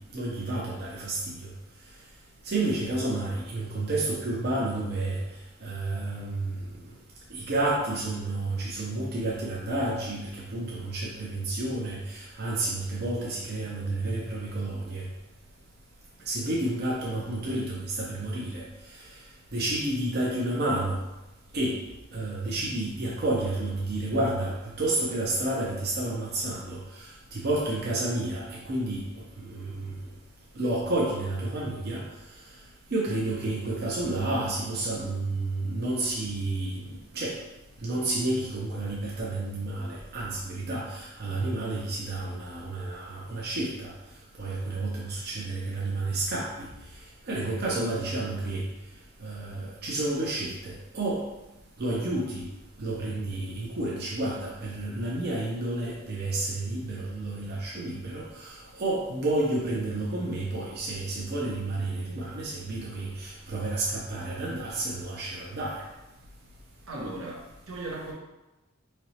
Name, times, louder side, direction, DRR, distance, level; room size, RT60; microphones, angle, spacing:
voice 1, 0.1-1.5 2.4-5.2 5.6-6.6 7.3-15.0 16.3-18.7 19.5-21.0 21.5-21.8 22.1-29.0 29.4-29.9 30.5-32.0 32.9-37.4 37.8-43.9 44.4-46.7 47.3-48.6 49.2-51.2 51.8-52.4 52.8-65.8, right 2 dB, 55° right, -4 dB, 0.6 m, -30 dB
voice 2, 66.9-68.1, right 2 dB, 85° right, -3 dB, 0.9 m, -38 dB
4.2 x 3.1 x 2.8 m, 1.0 s
head